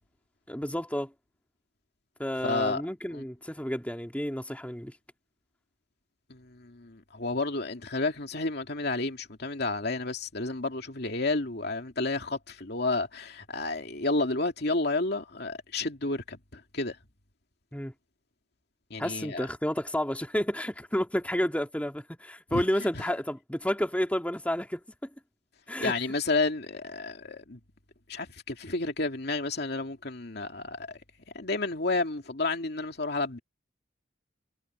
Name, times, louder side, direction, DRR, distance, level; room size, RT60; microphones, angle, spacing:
voice 1, 0.5-1.1 2.2-4.9 17.7-17.9 19.0-25.1 25.7-25.9, equal, 10° left, 2.1 m, -31 dB
voice 2, 2.4-2.8 3.1-3.2 6.3-17.0 18.9-19.5 22.5-22.6 22.9-23.1 25.8-27.6 28.1-31.0 31.3-33.4, left 3 dB, 60° left, 2.6 m, -31 dB
head